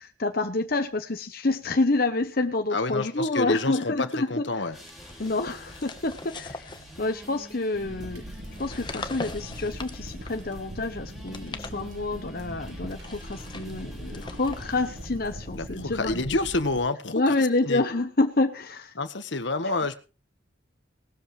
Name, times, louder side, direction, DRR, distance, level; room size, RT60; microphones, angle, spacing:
voice 1, 0.0-4.6 5.2-6.7 7.0-8.2 8.6-16.2 17.1-18.9 19.6-19.7, left 2 dB, 50° left, 7 dB, 1.0 m, -28 dB
voice 2, 2.7-4.8 15.5-17.3 17.6-17.8 19.0-20.0, left 2 dB, 70° left, 11 dB, 1.5 m, -28 dB
sound 1, 4.7-15.1, equal, ahead, 3.9 m, -48 dB
sound 2, 4.8-7.6 8.4-10.6 11.2-12.3 12.9-15.7, left 3 dB, 25° left, 1.2 m, -42 dB
Crackle, 7.7-16.8, equal, 70° right, 7.8 m, -41 dB
19.0 x 13.0 x 3.3 m, 0.33 s
head